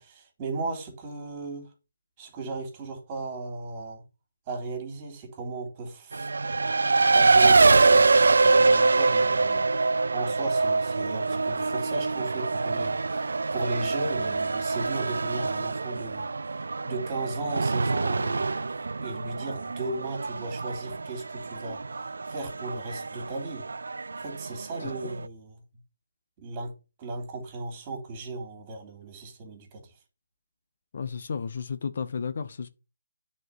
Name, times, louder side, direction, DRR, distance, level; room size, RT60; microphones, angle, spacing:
voice 1, 0.0-1.7 2.2-4.0 4.5-6.3 7.1-9.7 10.1-18.6 19.0-23.7 24.2-25.6 26.4-26.7 27.0-29.9, right 3 dB, 25° right, 3.1 m, -36 dB
Race car auto racing, 6.1-25.3, right 3 dB, 70° right, 0.4 m, -24 dB
voice 2, 24.8-25.1 30.9-32.7, left 6 dB, 50° left, 0.8 m, -33 dB
9.3 x 4.5 x 5.9 m
figure-of-eight pair, 155°, 0 cm